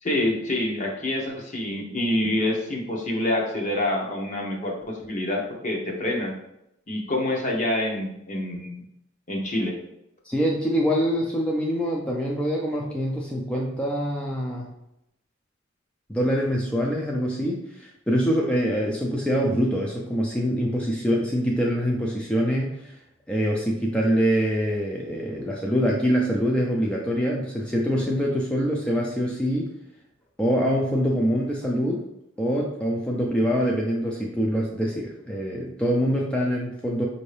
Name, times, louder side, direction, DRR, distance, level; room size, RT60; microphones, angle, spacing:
voice 1, 0.0-6.3 6.9-8.8 9.3-9.7, left 1 dB, 40° left, 0 dB, 0.9 m, -27 dB
voice 2, 10.2-14.7 16.1-23.0 23.3-29.7 30.4-32.0 32.4-37.1, equal, 5° left, -3 dB, 0.4 m, -24 dB
5.3 x 2.7 x 3.3 m, 0.82 s
head